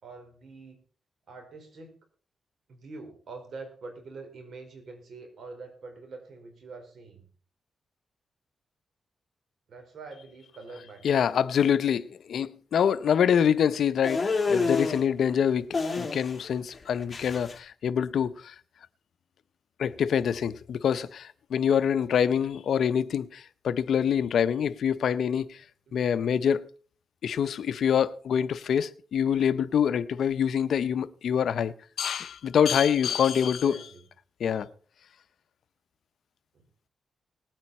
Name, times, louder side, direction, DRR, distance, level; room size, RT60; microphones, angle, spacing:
voice 1, 0.0-0.8 1.3-1.9 2.7-7.3 9.7-11.2 25.9-26.1 33.4-34.0 36.5-36.6, right 3 dB, 70° right, 4.4 m, -45 dB
voice 2, 11.0-12.0 12.3-15.7 16.0-18.5 19.8-25.5 25.9-26.7 27.2-33.9 34.4-34.7, left 8 dB, 80° left, 0.6 m, -25 dB
sound 1, 14.0-15.0 15.7-16.5 16.7-17.5, left 4 dB, 30° left, 2.6 m, -28 dB
19.5 x 9.0 x 4.2 m
cardioid pair, 85°, 0 cm